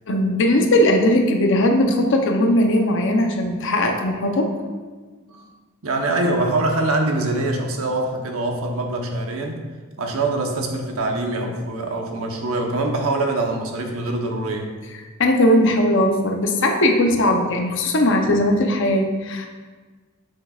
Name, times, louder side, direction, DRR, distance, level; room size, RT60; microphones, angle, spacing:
voice 1, 0.1-4.5 15.2-19.5, left 1 dB, 60° left, 3 dB, 0.8 m, -18 dB
voice 2, 5.8-9.6 10.0-14.7, right 2 dB, 90° right, 2 dB, 1.0 m, -24 dB
7.7 x 6.5 x 2.4 m, 1.4 s
head